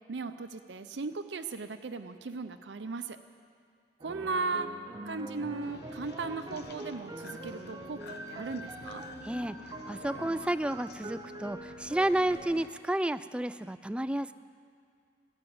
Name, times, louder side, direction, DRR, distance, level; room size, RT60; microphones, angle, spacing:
voice 1, 0.1-3.2 4.0-4.7 5.1-9.0, right 4 dB, 80° right, 8 dB, 0.6 m, -37 dB
sound 1, 4.0-12.6, right 2 dB, 20° right, 0.8 m, -45 dB
sound 2, 5.6-12.7, left 2 dB, 65° left, 0.9 m, -47 dB
voice 2, 9.2-9.6 9.9-14.3, right 1 dB, 5° right, 13 dB, 0.3 m, -31 dB
14.5 x 11.0 x 8.7 m, 2.3 s
head